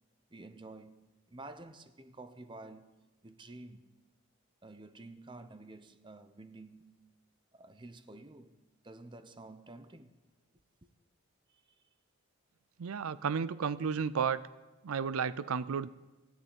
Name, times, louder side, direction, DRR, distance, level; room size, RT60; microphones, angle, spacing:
voice 1, 0.3-3.0 3.2-3.9 4.6-7.0 7.5-8.6 8.8-10.2 10.8-10.9 11.5-11.8, right 2 dB, 20° right, 0.7 m, -51 dB
voice 2, 12.8-14.4 14.8-15.9, right 6 dB, 75° right, 0.5 m, -32 dB
16.0 x 10.0 x 8.7 m
head